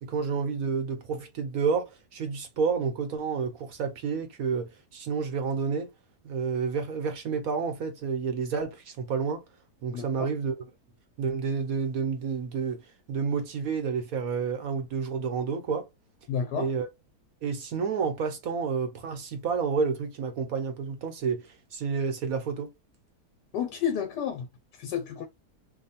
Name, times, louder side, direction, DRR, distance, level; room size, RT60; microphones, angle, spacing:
voice 1, 0.0-5.9 6.2-9.4 9.8-10.5 11.2-12.8 13.1-15.9 16.5-16.9 17.4-22.7, right 5 dB, 60° right, 1.1 m, -30 dB
voice 2, 9.9-10.3 16.3-16.7 23.5-24.5 24.7-25.3, left 8 dB, 75° left, 1.4 m, -31 dB
3.0 x 2.2 x 4.2 m
omnidirectional pair, 1.8 m